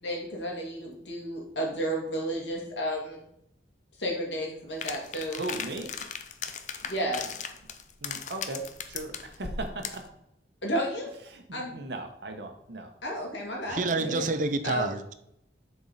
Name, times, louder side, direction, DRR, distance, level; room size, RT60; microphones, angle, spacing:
voice 1, 0.0-3.2 4.0-5.4 6.8-7.3 10.6-11.1 11.5-11.7 13.0-14.2 14.6-14.9, equal, 85° left, -1 dB, 2.1 m, -32 dB
sound 1, 4.8-10.1, left 6 dB, 45° left, 0.5 m, -37 dB
voice 2, 5.2-6.1 8.0-10.1 11.3-12.9 14.0-14.1, right 2 dB, 70° right, 5 dB, 1.1 m, -38 dB
voice 3, 13.7-15.1, right 3 dB, 45° right, 10 dB, 0.5 m, -28 dB
7.2 x 4.6 x 4.2 m, 0.78 s
head